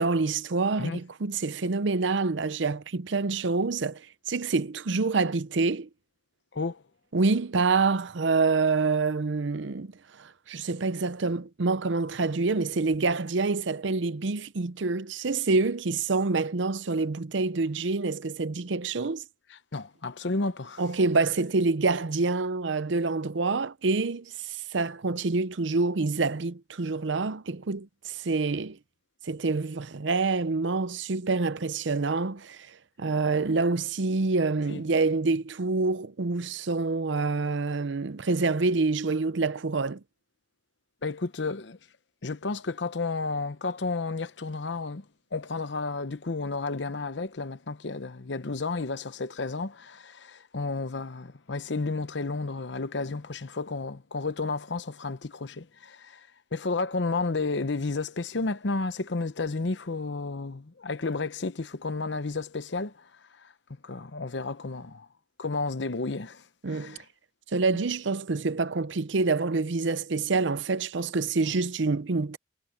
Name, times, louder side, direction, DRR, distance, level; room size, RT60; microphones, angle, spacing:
voice 1, 0.0-5.9 7.1-9.9 10.2-19.2 20.8-28.8 29.3-32.7 33.0-40.0 66.6-67.0 67.5-72.4, right 3 dB, 75° right, 0.7 m, -27 dB
voice 2, 6.5-6.8 19.5-20.8 34.7-34.8 41.0-41.8 42.2-45.0 45.3-63.1 63.4-63.5 63.8-65.1 65.4-67.0, left 3 dB, 70° left, 0.9 m, -32 dB
head